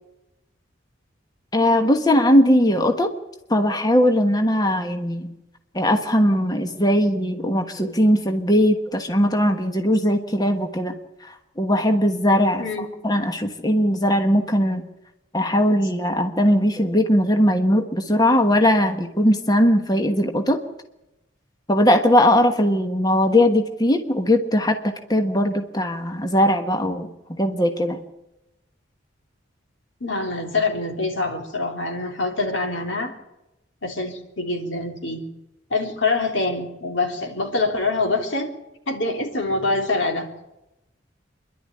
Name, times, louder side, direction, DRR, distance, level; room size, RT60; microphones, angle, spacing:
voice 1, 1.5-3.1 3.5-5.3 5.7-10.9 11.2-12.6 13.0-14.8 15.3-20.6 21.7-27.1 27.4-28.0, equal, 20° left, 5 dB, 1.3 m, -19 dB
voice 2, 30.0-33.1 33.8-35.2 35.7-38.5 38.9-40.3, left 3 dB, 80° left, 2 dB, 3.4 m, -25 dB
25.5 x 11.5 x 9.7 m, 0.92 s
head